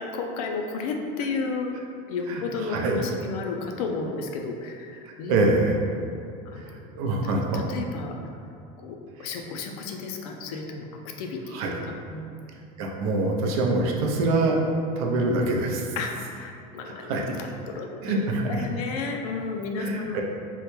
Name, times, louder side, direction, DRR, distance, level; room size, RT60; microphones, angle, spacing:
voice 1, 0.0-5.4 6.5-6.9 7.5-8.1 8.8-11.6 11.9-12.3 16.0-17.1 17.7-18.2 18.5-20.2, left 4 dB, 90° left, 2 dB, 0.4 m, -32 dB
voice 2, 2.3-3.0 5.3-5.8 6.6-6.7 7.0-7.7 9.2-9.3 11.5-11.7 12.8-15.8 16.8-17.2 18.0-18.7 19.8-20.2, right 2 dB, 90° right, 0 dB, 0.5 m, -25 dB
3.6 x 2.2 x 3.0 m, 2.5 s
supercardioid pair, 140°, 18 cm